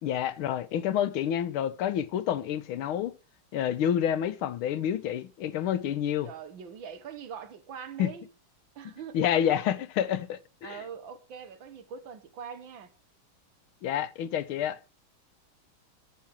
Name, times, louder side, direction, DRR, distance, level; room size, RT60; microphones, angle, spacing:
voice 1, 0.0-3.1 3.5-6.3 8.0-8.1 9.1-10.8 13.8-14.8, left 10 dB, 85° left, 1.7 m, -28 dB
voice 2, 6.2-8.3 8.7-9.2 9.5-9.8 10.6-12.9, right 7 dB, 70° right, 1.8 m, -42 dB
13.0 x 4.6 x 7.4 m
omnidirectional pair, 2.3 m